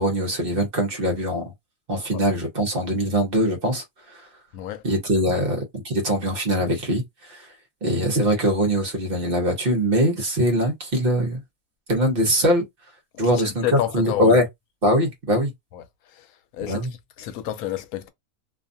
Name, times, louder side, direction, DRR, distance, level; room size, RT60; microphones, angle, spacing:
voice 1, 0.0-1.5 1.9-3.8 4.1-4.2 4.8-5.6 5.8-7.0 7.3-7.5 7.8-11.4 11.9-12.6 13.2-13.6 13.9-14.4 14.8-15.5 16.6-16.9, equal, 45° right, 1.0 m, -22 dB
voice 2, 13.2-14.4 15.7-15.8 16.1-16.3 16.5-16.9 17.2-18.1, left 13 dB, 80° left, 1.0 m, -29 dB
2.6 x 2.4 x 2.6 m
omnidirectional pair, 1.5 m